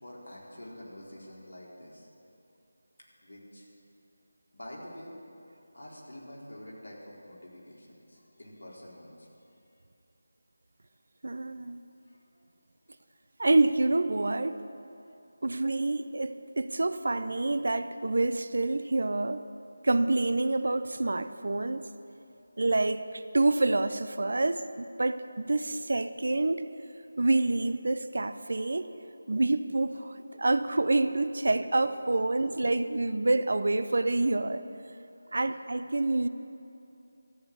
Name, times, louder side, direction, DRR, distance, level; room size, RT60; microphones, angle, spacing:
voice 1, 0.0-2.1 3.2-3.7 4.5-5.2 5.7-9.3 12.1-12.2 22.2-22.3 31.5-31.6 31.9-32.1 32.5-32.6 35.1-35.6, left 1 dB, 75° left, -4 dB, 4.2 m, -47 dB
voice 2, 11.2-11.8 13.4-14.6 15.4-19.4 19.8-21.9 22.6-26.6 27.2-28.9 29.3-34.6 35.3-36.3, right 2 dB, 60° right, 11 dB, 0.6 m, -27 dB
13.5 x 8.5 x 9.3 m, 2.7 s
figure-of-eight pair, 160°, 0 cm